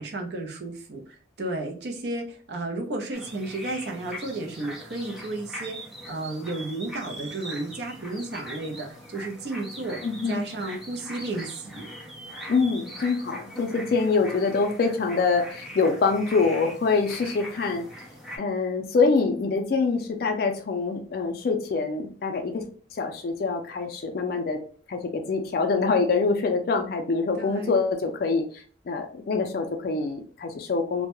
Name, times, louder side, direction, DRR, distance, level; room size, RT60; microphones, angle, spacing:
voice 1, 0.0-5.8 6.1-8.9 9.1-10.0 10.3-11.9 27.3-27.8, right 2 dB, 65° right, 2 dB, 0.5 m, -33 dB
sound 1, 3.1-18.4, equal, ahead, 0.5 m, -41 dB
voice 2, 10.0-10.4 12.5-17.9 18.4-22.6 22.9-24.6 24.9-31.1, left 4 dB, 55° left, 5 dB, 0.3 m, -25 dB
2.2 x 2.0 x 2.9 m, 0.43 s
head